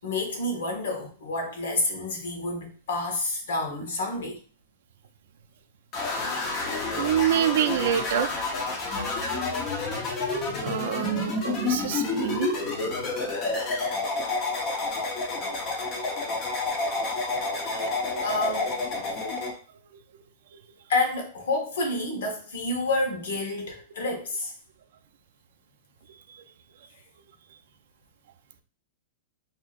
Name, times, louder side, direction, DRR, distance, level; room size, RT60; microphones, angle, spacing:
voice 1, 0.0-4.4 18.2-18.7 20.9-24.5, left 2 dB, 80° left, 1.3 m, -29 dB
sound 1, 5.9-19.5, left 3 dB, 30° left, 0.9 m, -29 dB
voice 2, 7.0-8.6 10.6-12.5 13.0-13.3 14.3-14.4 17.8-17.9 20.5-20.6 26.3-26.4, right 11 dB, 65° right, 0.5 m, -27 dB
4.6 x 2.9 x 2.5 m
supercardioid pair, 160°, 0 cm